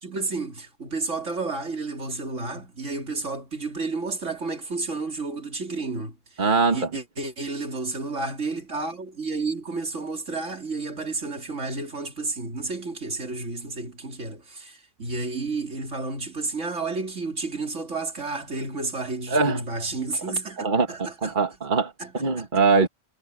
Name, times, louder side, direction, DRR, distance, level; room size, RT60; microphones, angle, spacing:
voice 1, 0.0-21.3 22.0-22.1 22.4-22.5, right 3 dB, 75° right, 3.3 m, -31 dB
voice 2, 6.4-6.9 19.3-19.6 20.6-22.9, right 4 dB, 40° right, 1.9 m, -22 dB
omnidirectional pair, 1.3 m